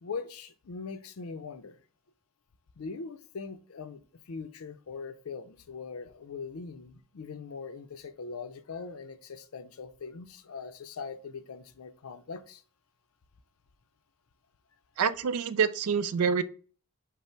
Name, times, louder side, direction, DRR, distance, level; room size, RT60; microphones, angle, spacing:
voice 1, 0.0-1.8 2.8-12.6, left 5 dB, 70° left, 0.5 m, -41 dB
voice 2, 15.0-16.4, right 6 dB, 90° right, 0.4 m, -26 dB
5.5 x 2.0 x 4.4 m
head